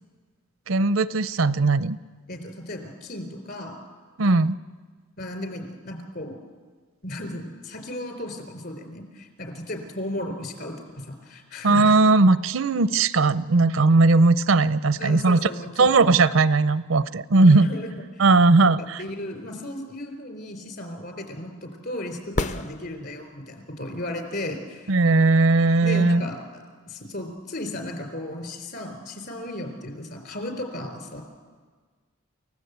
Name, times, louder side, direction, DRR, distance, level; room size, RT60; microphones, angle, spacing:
voice 1, 0.7-2.0 4.2-4.6 11.6-15.5 15.8-17.7 18.2-19.0 24.9-26.2, right 3 dB, 80° right, 15 dB, 0.7 m, -18 dB
voice 2, 2.3-3.8 5.2-6.3 7.0-11.9 15.0-15.9 17.4-18.2 18.8-24.9 25.8-31.2, left 1 dB, 50° left, 6 dB, 3.9 m, -35 dB
sound 1, 22.3-23.5 27.4-27.5, left 2 dB, 35° left, 0.7 m, -30 dB
29.0 x 15.5 x 8.2 m, 1.5 s
head